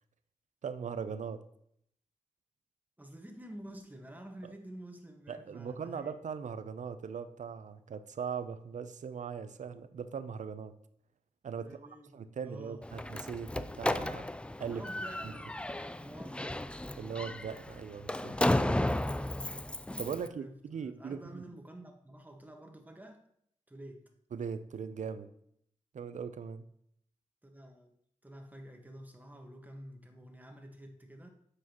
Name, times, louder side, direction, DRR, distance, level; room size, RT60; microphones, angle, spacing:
voice 1, 0.6-1.4 5.3-10.7 11.4-11.7 12.1-14.3 14.6-14.8 15.2-15.3 17.0-18.4 20.0-21.4 24.3-25.3 25.9-26.6, right 6 dB, 65° right, 12 dB, 0.5 m, -39 dB
voice 2, 3.0-6.2 11.5-12.2 12.4-13.1 14.6-16.6 20.2-23.2 23.7-24.1 27.4-27.9 28.2-31.3, right 1 dB, 10° right, 3 dB, 1.4 m, -49 dB
Slam, 12.8-20.3, left 1 dB, 10° left, 0.3 m, -34 dB
8.3 x 4.8 x 3.0 m, 0.69 s
cardioid pair, 40°, 13 cm